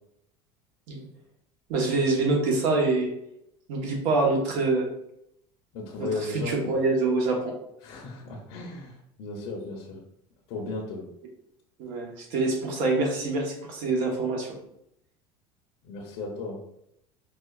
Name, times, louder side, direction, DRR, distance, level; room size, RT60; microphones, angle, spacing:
voice 1, 1.7-3.1 3.7-4.9 6.0-6.1 6.3-7.5 11.8-14.5, right 3 dB, 75° right, 0 dB, 1.1 m, -25 dB
voice 2, 5.7-6.7 7.8-10.0 10.5-11.0 15.8-16.6, left 3 dB, 65° left, -2 dB, 0.7 m, -35 dB
4.8 x 2.4 x 2.3 m, 0.78 s
supercardioid pair, 120°, 12 cm